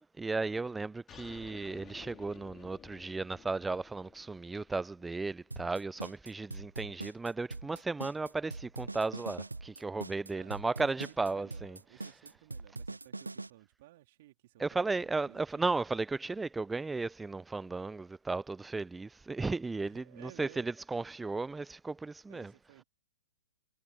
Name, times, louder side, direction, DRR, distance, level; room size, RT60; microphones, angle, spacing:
voice 1, 0.0-11.8 14.6-22.5, right 3 dB, 10° right, 0.3 m, -35 dB
sound 1, 1.1-6.1, left 10 dB, 25° left, 3.2 m, -55 dB
sound 2, 5.5-13.5, right 3 dB, 90° right, 0.4 m, -42 dB
voice 2, 10.3-15.7 19.8-20.7 22.3-22.8, right 16 dB, 50° right, 3.2 m, -57 dB
figure-of-eight pair, 110°, 0 cm